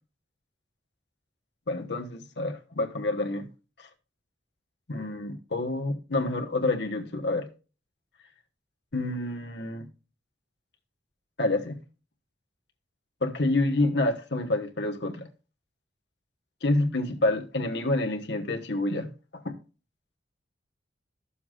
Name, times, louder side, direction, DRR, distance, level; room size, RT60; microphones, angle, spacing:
voice 1, 1.7-3.5 3.8-3.9 4.9-7.5 8.9-9.9 11.4-11.8 13.2-15.3 16.6-19.1 19.3-19.5, left 2 dB, 65° left, 1.2 m, -28 dB
12.5 x 7.0 x 2.5 m
head